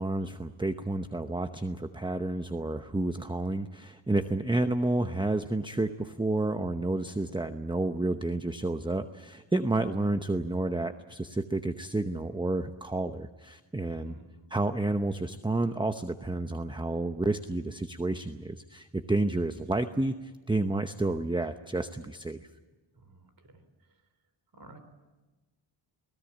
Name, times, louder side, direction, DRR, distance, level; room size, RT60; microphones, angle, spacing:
voice 1, 0.0-14.2 14.5-22.5, right 2 dB, 10° right, 9 dB, 0.8 m, -30 dB
voice 2, 14.0-14.5 23.0-23.6 24.5-24.8, right 2 dB, 45° right, 9 dB, 3.9 m, -53 dB
24.0 x 17.5 x 8.6 m, 1.2 s
cardioid pair, 85°, 48 cm